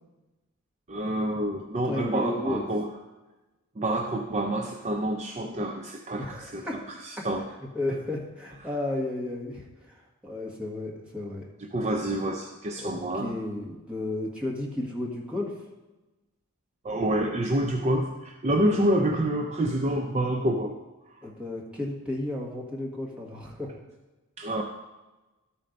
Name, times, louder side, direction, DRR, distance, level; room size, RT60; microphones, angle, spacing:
voice 1, 0.9-2.9 3.8-7.5 7.9-8.0 11.7-13.3 16.8-20.8 24.4-24.6, right 1 dB, 30° right, 2 dB, 0.5 m, -27 dB
voice 2, 1.9-2.6 6.2-6.8 7.2-7.3 7.7-11.4 12.8-15.5 18.7-18.8 21.2-23.7, left 2 dB, 5° right, -4 dB, 1.6 m, -33 dB
12.5 x 4.4 x 5.2 m, 1.1 s
head